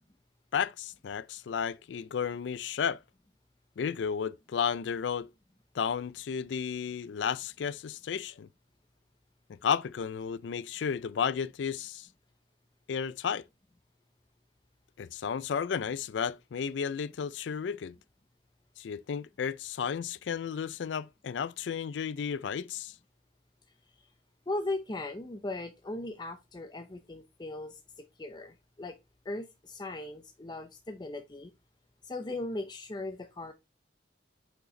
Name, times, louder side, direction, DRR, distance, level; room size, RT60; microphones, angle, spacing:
voice 1, 0.5-3.0 3.8-5.3 5.7-8.5 9.5-12.1 12.9-13.4 15.0-18.0 18.8-22.9, left 7 dB, 85° left, 0.4 m, -33 dB
voice 2, 24.5-29.0 29.2-31.5 32.0-33.5, left 2 dB, 25° left, 0.6 m, -38 dB
6.4 x 5.3 x 3.1 m
head